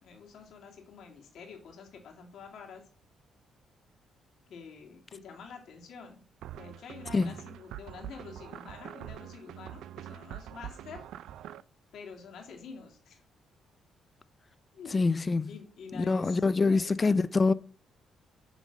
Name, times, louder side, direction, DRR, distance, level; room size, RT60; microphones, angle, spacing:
voice 1, 0.0-2.8 4.5-6.2 6.5-11.1 11.9-13.2 14.7-15.0 15.5-17.2, left 5 dB, 70° left, 2.1 m, -47 dB
sound 1, 6.4-11.6, right 11 dB, 85° right, 0.4 m, -44 dB
voice 2, 14.9-15.5 15.9-17.5, left 3 dB, 30° left, 0.4 m, -25 dB
9.1 x 3.3 x 6.3 m
cardioid pair, 90°, 0 cm